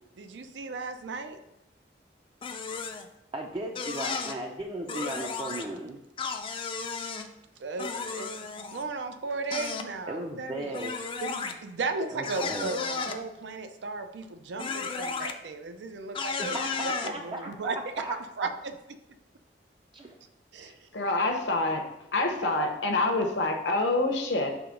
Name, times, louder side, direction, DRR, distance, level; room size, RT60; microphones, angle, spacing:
voice 1, 0.2-1.4 7.6-10.7 11.2-16.6 16.8-18.1 18.4-18.7 20.5-20.9, right 3 dB, 80° right, 8 dB, 0.5 m, -35 dB
sound 1, 2.4-3.1 3.7-4.3 4.9-5.6 6.2-7.2 7.8-8.8 9.5-9.9 10.7-11.5 12.2-13.2 14.6-15.3 16.1-17.1, left 5 dB, 30° left, 0.4 m, -34 dB
voice 2, 3.3-6.0 10.1-10.9 12.1-12.7 16.4-17.5 18.0-18.1 19.9-20.1 22.4-22.7, right 1 dB, 25° right, 1 dB, 0.4 m, -36 dB
voice 3, 20.6-21.9 22.1-24.5, left 2 dB, 75° left, 3 dB, 1.0 m, -27 dB
4.9 x 3.7 x 5.1 m, 0.90 s
head